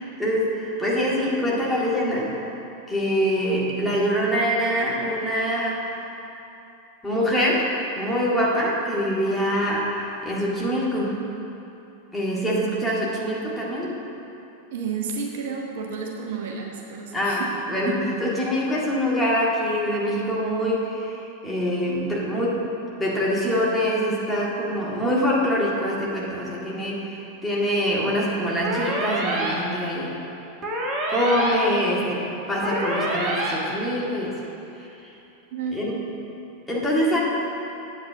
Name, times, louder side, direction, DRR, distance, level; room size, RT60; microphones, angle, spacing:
voice 1, 0.2-2.3 2.9-5.9 7.0-11.2 12.1-14.0 17.1-17.4 17.7-22.7 23.0-30.1 31.1-34.4 35.7-36.0 36.7-37.2, equal, 5° left, -5 dB, 1.9 m, -24 dB
voice 2, 14.7-17.5 35.5-35.9, right 5 dB, 55° right, 0 dB, 1.0 m, -31 dB
sound 1, 28.6-29.5 30.6-31.5 32.6-33.5, right 2 dB, 25° right, 1.7 m, -26 dB
8.3 x 5.4 x 7.3 m, 2.9 s
figure-of-eight pair, 90°, 0 cm